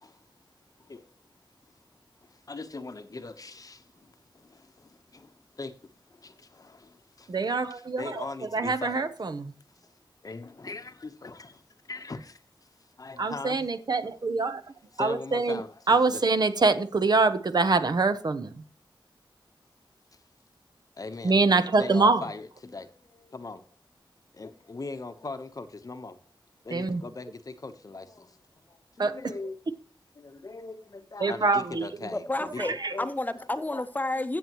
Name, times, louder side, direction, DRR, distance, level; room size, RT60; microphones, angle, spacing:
voice 1, 2.2-7.3 7.7-9.1 9.8-9.9 10.2-12.4 13.0-13.6 15.0-15.7 16.1-16.2 21.0-21.4 21.8-23.6 24.3-26.2 26.6-28.4 28.7-29.6 30.2-33.1 33.7-33.8, left 3 dB, 45° left, 1.0 m, -40 dB
voice 2, 7.3-8.3 8.5-9.5 13.2-14.6 15.0-18.6 21.2-22.3 26.7-27.0 29.0-29.2 31.2-32.1 32.6-33.0, right 3 dB, 50° right, 0.8 m, -25 dB
voice 3, 32.1-34.4, left 2 dB, 20° left, 0.9 m, -31 dB
15.5 x 7.0 x 3.0 m
wide cardioid pair, 110°, 9 cm